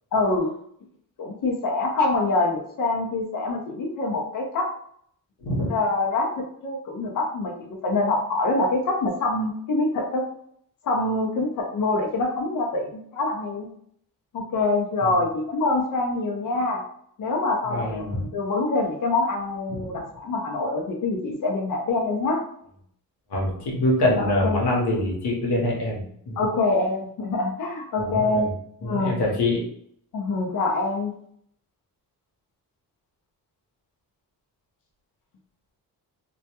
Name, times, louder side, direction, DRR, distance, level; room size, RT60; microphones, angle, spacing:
voice 1, 0.1-0.5 1.2-4.7 5.7-10.2 10.8-13.7 14.3-16.8 17.2-22.4 24.2-24.7 26.4-28.5 28.8-29.2 30.1-31.1, left 2 dB, 55° left, 0 dB, 0.6 m, -25 dB
voice 2, 5.4-5.7 15.0-15.1 17.7-18.2 19.7-19.8 23.3-26.5 28.0-28.5 28.8-29.6, left 1 dB, 90° left, -2 dB, 0.9 m, -25 dB
2.2 x 2.1 x 2.8 m, 0.67 s
cardioid pair, 85°, 38 cm